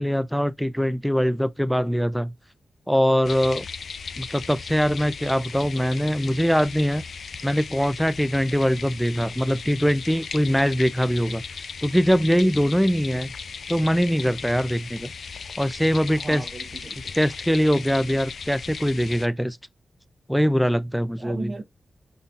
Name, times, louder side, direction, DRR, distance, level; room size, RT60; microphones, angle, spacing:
voice 1, 0.0-2.3 2.9-3.7 4.2-7.0 7.4-11.4 11.8-13.3 13.7-15.1 15.6-16.4 17.2-19.6 20.3-21.5, equal, ahead, 0.3 m, -22 dB
sound 1, 3.2-19.3, left 5 dB, 60° left, 0.4 m, -37 dB
voice 2, 16.2-17.1 21.2-21.6, right 3 dB, 35° right, 0.8 m, -36 dB
5.5 x 4.0 x 2.4 m
wide cardioid pair, 135°, 0 cm